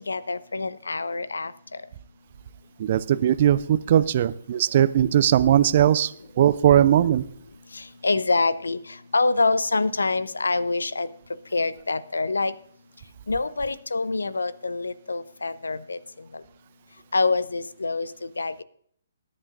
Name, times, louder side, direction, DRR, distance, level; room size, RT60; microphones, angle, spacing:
voice 1, 0.1-1.5 7.7-8.8 9.1-11.1 11.5-12.5 13.3-16.0 17.1-18.1 18.4-18.6, left 3 dB, 75° left, 17 dB, 0.7 m, -25 dB
voice 2, 2.8-6.1 6.4-7.2, right 10 dB, 45° right, 16 dB, 0.5 m, -19 dB
20.0 x 11.0 x 2.6 m, 0.63 s
figure-of-eight pair, 135°, 0 cm